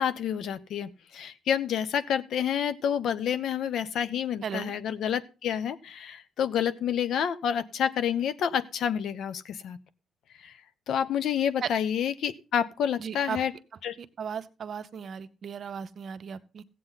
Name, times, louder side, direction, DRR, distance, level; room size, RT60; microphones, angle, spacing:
voice 1, 0.0-9.8 10.4-10.5 10.9-13.5 13.8-14.0, left 8 dB, 70° left, 14 dB, 0.8 m, -29 dB
voice 2, 4.4-4.7 11.6-11.7 13.0-13.4 14.2-16.6, right 7 dB, 55° right, 11 dB, 0.8 m, -36 dB
14.5 x 8.5 x 4.0 m, 0.32 s
cardioid pair, 90°, 0 cm